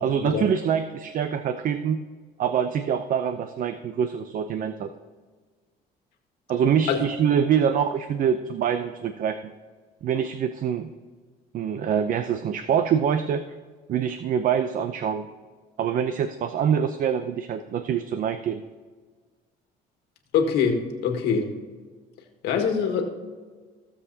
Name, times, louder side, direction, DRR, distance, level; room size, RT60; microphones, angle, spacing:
voice 1, 0.0-2.0 2.4-4.9 6.5-9.4 10.0-10.9 11.5-13.4 13.9-15.3 15.8-18.6, right 8 dB, 55° right, 9 dB, 0.6 m, -25 dB
voice 2, 20.3-21.5 22.4-23.0, left 6 dB, 80° left, 3 dB, 1.7 m, -23 dB
16.0 x 7.2 x 2.8 m, 1.5 s
cardioid pair, 110°, 17 cm